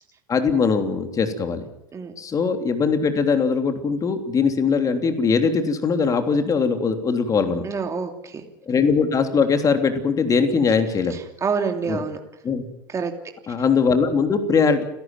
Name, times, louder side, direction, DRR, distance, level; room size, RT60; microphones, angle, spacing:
voice 1, 0.3-1.7 2.2-7.6 8.7-11.2 11.9-12.0 12.4-12.6 13.5-14.8, left 5 dB, 30° left, 6 dB, 3.3 m, -21 dB
voice 2, 7.6-8.4 11.1-12.2 12.9-13.1, right 5 dB, 30° right, 4 dB, 2.9 m, -27 dB
30.0 x 12.0 x 9.3 m, 0.83 s
hypercardioid pair, 85°, 11 cm